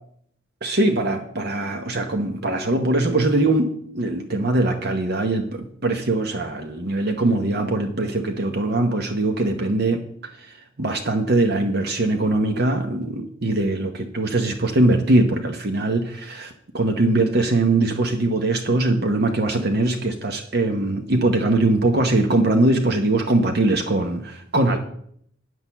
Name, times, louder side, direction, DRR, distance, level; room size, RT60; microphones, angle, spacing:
voice 1, 0.6-10.0 10.4-10.5 10.8-24.8, right 2 dB, 55° right, 5 dB, 0.9 m, -21 dB
9.2 x 6.4 x 7.1 m, 0.67 s
head